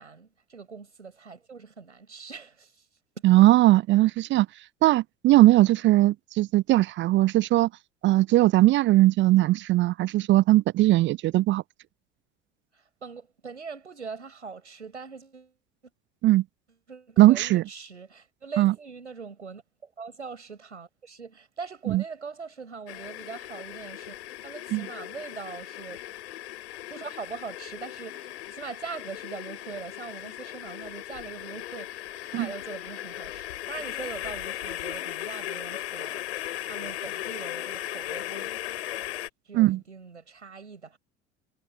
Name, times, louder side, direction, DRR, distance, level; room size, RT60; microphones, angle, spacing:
voice 1, 0.0-2.8 3.2-3.4 12.7-15.5 16.9-26.2 26.9-38.5 39.5-41.0, right 5 dB, 85° right, 5.9 m, -42 dB
voice 2, 3.2-4.5 4.8-7.7 8.0-11.6 16.2-16.4 17.2-17.6 18.6-18.7 21.9-22.0 24.7-24.9 32.3-32.5 39.5-39.8, right 16 dB, 35° right, 0.5 m, -19 dB
sound 1, 22.9-39.3, left 13 dB, 70° left, 3.5 m, -37 dB
figure-of-eight pair, 65°, 34 cm